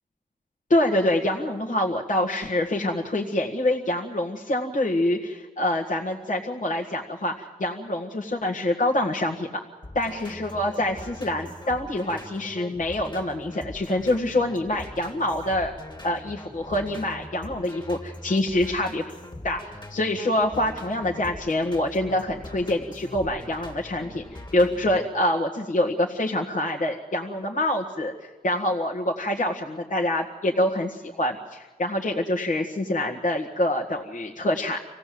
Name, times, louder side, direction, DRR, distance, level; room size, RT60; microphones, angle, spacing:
voice 1, 0.7-9.6 9.9-15.7 16.0-19.0 19.4-34.8, left 1 dB, 50° left, -2 dB, 1.7 m, -26 dB
sound 1, 9.8-25.1, left 1 dB, 30° left, 2.6 m, -42 dB
26.0 x 17.0 x 7.7 m, 1.3 s
wide cardioid pair, 85°, 17 cm